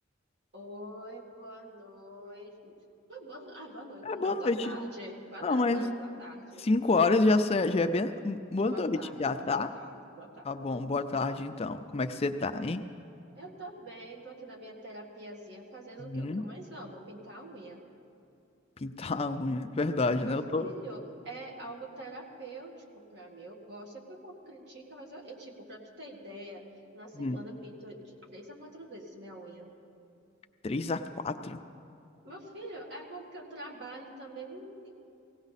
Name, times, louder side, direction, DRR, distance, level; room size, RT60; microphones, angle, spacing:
voice 1, 0.5-2.8 3.1-6.7 8.7-10.7 13.3-17.8 20.2-26.6 26.9-29.7 32.2-34.9, right 1 dB, 55° right, 0 dB, 1.8 m, -45 dB
voice 2, 4.0-4.8 5.4-5.8 6.6-9.7 10.4-12.8 16.0-16.4 18.8-20.6 27.1-27.4 30.6-31.6, left 3 dB, 30° left, 8 dB, 0.4 m, -28 dB
18.0 x 17.0 x 4.1 m, 2.6 s
head